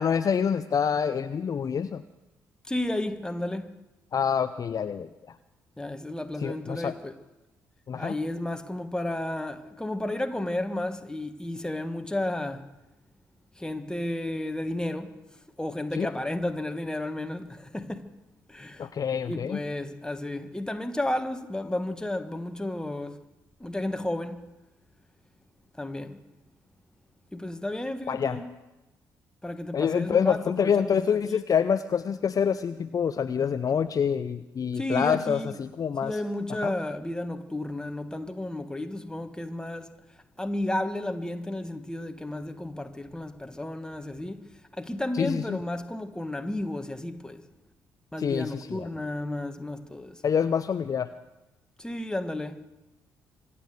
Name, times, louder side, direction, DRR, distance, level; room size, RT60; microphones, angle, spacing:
voice 1, 0.0-2.0 4.1-5.4 6.4-7.0 7.9-8.2 16.0-16.1 18.8-19.6 28.1-28.4 29.7-36.2 36.6-36.7 45.1-45.6 48.2-48.9 50.2-51.1, left 7 dB, 40° left, 0.6 m, -26 dB
voice 2, 2.7-3.7 5.8-7.1 8.0-12.7 13.6-15.1 15.6-18.1 18.5-18.9 19.3-23.2 23.6-24.4 25.8-26.2 27.3-28.5 29.4-31.4 34.7-35.6 36.0-39.9 40.4-47.4 48.1-50.2 51.8-52.6, left 1 dB, 10° left, 1.5 m, -32 dB
25.0 x 8.5 x 6.7 m
hypercardioid pair, 45°, 9 cm